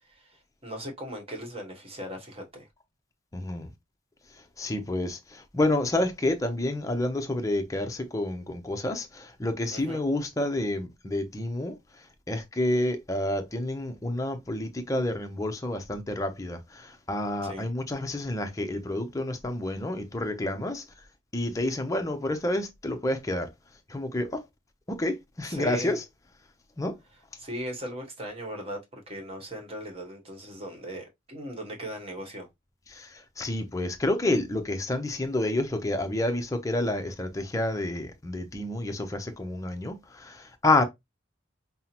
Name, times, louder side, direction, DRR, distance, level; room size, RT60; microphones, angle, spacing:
voice 1, 0.0-2.7 9.7-10.0 17.4-17.7 25.4-25.9 27.4-32.5, equal, 30° right, 1.0 m, -38 dB
voice 2, 3.3-3.7 4.3-20.8 21.3-23.5 23.9-24.4 24.9-26.0 26.8-26.9 32.9-40.8, left 1 dB, 15° left, 0.6 m, -29 dB
5.5 x 2.0 x 2.9 m
head